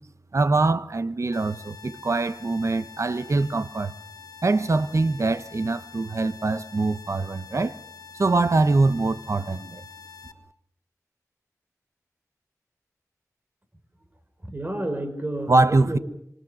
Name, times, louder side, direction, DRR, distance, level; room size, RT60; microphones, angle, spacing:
voice 1, 0.3-3.9 4.4-7.8 8.2-9.8 15.5-16.0, right 3 dB, 55° right, 1.2 m, -23 dB
sound 1, 1.3-10.3, left 6 dB, 85° left, 1.4 m, -46 dB
voice 2, 14.4-16.0, right 1 dB, 30° right, 4.4 m, -30 dB
27.0 x 24.0 x 6.5 m
wide cardioid pair, 55°, 6 cm